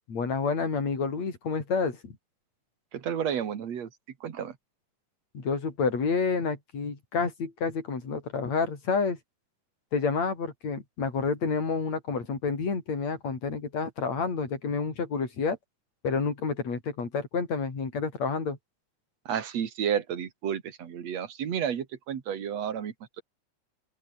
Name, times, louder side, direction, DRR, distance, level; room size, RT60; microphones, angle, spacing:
voice 1, 0.1-2.2 5.3-9.2 9.9-15.6 16.0-18.6, left 5 dB, 60° left, 6.2 m, -29 dB
voice 2, 2.9-3.9 4.2-4.6 19.3-23.2, right 8 dB, 60° right, 3.2 m, -31 dB
open air
omnidirectional pair, 3.5 m